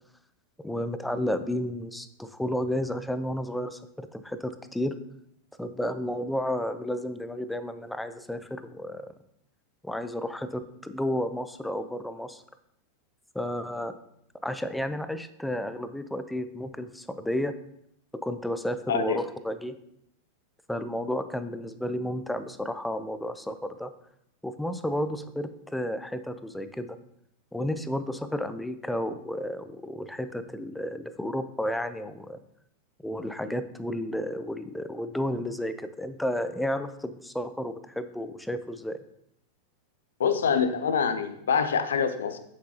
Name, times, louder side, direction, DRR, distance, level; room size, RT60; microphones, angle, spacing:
voice 1, 0.6-4.9 5.6-9.1 9.8-12.4 13.3-13.9 14.4-17.5 18.1-19.7 20.7-23.9 24.4-27.0 27.5-32.4 33.0-39.0, left 1 dB, 5° left, 11 dB, 0.5 m, -32 dB
voice 2, 18.9-19.2 40.2-42.4, left 6 dB, 65° left, 10 dB, 0.8 m, -25 dB
8.4 x 7.4 x 2.9 m, 0.76 s
figure-of-eight pair, 90°, 0 cm